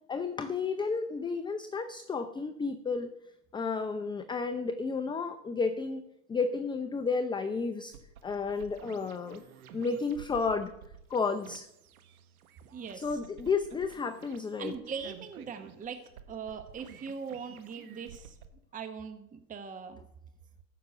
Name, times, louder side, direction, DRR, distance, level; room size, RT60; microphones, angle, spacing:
voice 1, 0.1-3.1 3.5-6.0 6.3-8.0 8.2-9.4 9.7-10.7 11.1-11.7 12.9-15.0, left 4 dB, 10° left, 8 dB, 0.6 m, -32 dB
sound 1, 7.9-18.5, right 7 dB, 85° right, 1.3 m, -52 dB
voice 2, 12.7-13.1 14.6-16.0 16.3-18.4 18.7-20.0, right 6 dB, 20° right, 8 dB, 1.0 m, -40 dB
14.5 x 6.0 x 6.8 m, 0.83 s
hypercardioid pair, 105°, 42 cm